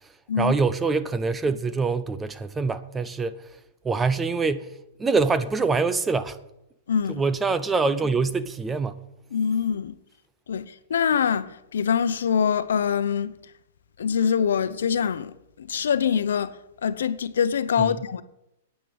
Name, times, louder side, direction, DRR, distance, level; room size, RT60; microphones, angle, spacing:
voice 1, 0.4-3.4 3.8-4.7 5.0-6.4 7.1-9.0 17.8-18.0, right 4 dB, 10° right, 0.6 m, -24 dB
voice 2, 6.9-7.2 9.3-9.9 10.5-13.4 14.0-18.2, left 7 dB, 85° left, 0.8 m, -24 dB
9.3 x 9.2 x 8.0 m
hypercardioid pair, 150°, 0 cm